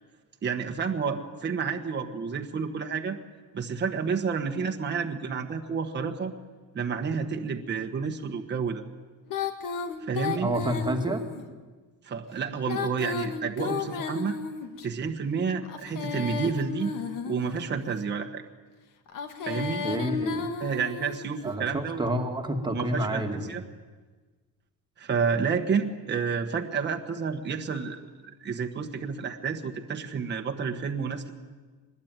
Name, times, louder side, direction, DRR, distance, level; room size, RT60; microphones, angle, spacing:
voice 1, 0.4-3.2 3.5-6.3 6.7-8.8 10.0-10.5 12.0-14.4 14.8-16.9 17.3-18.4 19.4-19.8 20.6-22.1 22.7-23.6 25.0-31.3, right 6 dB, 30° right, 4 dB, 1.3 m, -30 dB
Female singing, 9.3-11.4 12.5-14.9 15.6-17.8 19.1-21.3, left 6 dB, 60° left, 2.1 m, -33 dB
voice 2, 10.4-11.2 19.8-20.4 21.4-23.5, right 1 dB, 10° right, 4 dB, 1.9 m, -29 dB
24.0 x 20.5 x 9.0 m, 1.4 s
cardioid pair, 170°, 36 cm